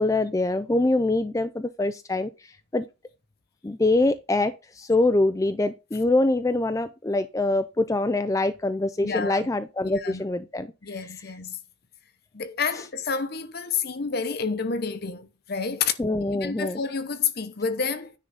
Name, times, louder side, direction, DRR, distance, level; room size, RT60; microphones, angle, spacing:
voice 1, 0.0-2.3 2.7-2.8 3.6-10.7 16.0-16.8, left 2 dB, 15° left, 0.4 m, -24 dB
voice 2, 9.0-9.4 9.8-10.2 10.8-11.6 12.3-15.9 16.3-18.1, left 5 dB, 50° left, 0.8 m, -29 dB
9.8 x 3.8 x 5.5 m
head